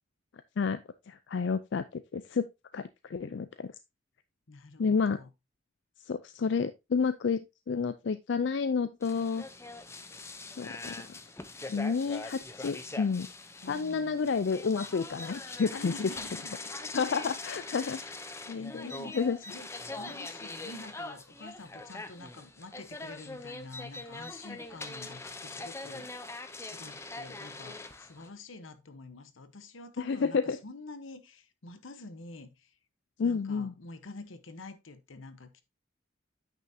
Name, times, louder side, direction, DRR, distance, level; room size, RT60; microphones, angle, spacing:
voice 1, 1.1-2.5 2.7-3.7 4.8-5.2 6.1-9.4 10.6-11.1 11.7-13.3 13.7-16.1 16.9-18.0 18.5-18.9 19.1-19.4 30.0-30.6 33.2-33.7, left 5 dB, 60° left, 0.4 m, -30 dB
voice 2, 4.5-5.3 13.6-14.3 15.7-17.1 17.8-18.1 18.4-19.7 19.9-26.2 26.6-32.8 33.2-35.6, left 3 dB, 85° left, 1.0 m, -48 dB
sound 1, 9.0-28.3, left 2 dB, 15° left, 0.6 m, -42 dB
9.0 x 6.0 x 2.7 m
head